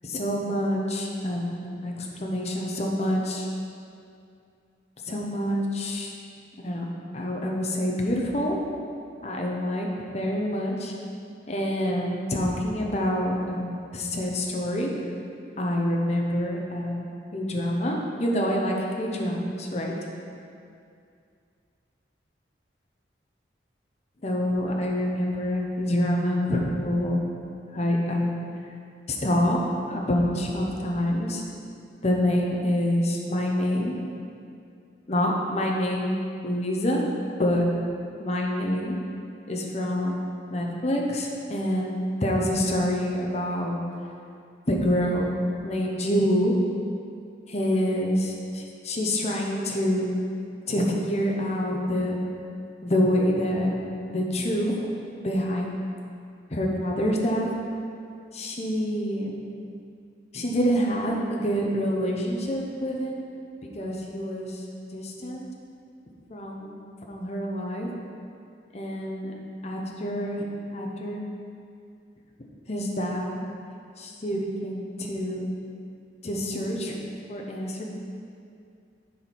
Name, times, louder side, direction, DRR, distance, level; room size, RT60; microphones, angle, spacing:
voice 1, 0.0-3.5 5.1-6.1 6.6-6.9 7.1-8.6 9.2-9.9 10.1-10.9 11.5-14.9 15.6-20.0 24.2-27.3 27.7-28.3 29.1-29.6 29.9-31.4 32.0-34.0 35.1-36.2 36.4-37.0 37.4-37.7 38.2-39.0 39.5-40.2 40.5-43.8 44.7-45.3 45.6-46.5 47.5-50.1 50.7-52.2 52.8-53.8 54.1-54.7 55.2-55.8 56.5-57.5 58.3-59.4 60.3-63.2 63.7-64.7 64.9-65.5 66.3-66.8 67.1-68.0 68.7-69.3 69.6-71.2 72.7-73.5 74.0-75.5 76.2-77.0 77.3-77.8, equal, 35° left, -1 dB, 0.8 m, -26 dB
7.4 x 4.3 x 5.8 m, 2.4 s
head